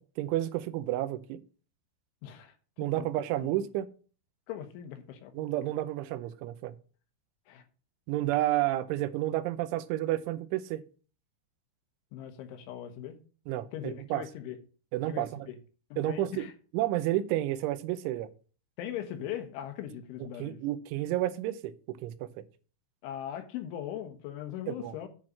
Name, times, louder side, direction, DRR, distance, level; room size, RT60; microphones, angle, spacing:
voice 1, 0.2-1.4 2.8-3.9 5.3-6.8 8.1-10.8 13.5-14.2 14.9-15.5 16.0-16.5 16.7-18.3 20.4-22.4 24.7-24.9, right 14 dB, 85° right, 13 dB, 3.1 m, -31 dB
voice 2, 2.2-2.9 4.5-5.5 7.5-7.6 12.1-13.2 13.7-14.6 15.1-15.6 15.9-16.5 18.8-20.6 23.0-25.1, left 10 dB, 80° left, 7 dB, 3.6 m, -40 dB
10.5 x 4.0 x 7.4 m, 0.38 s
omnidirectional pair, 5.4 m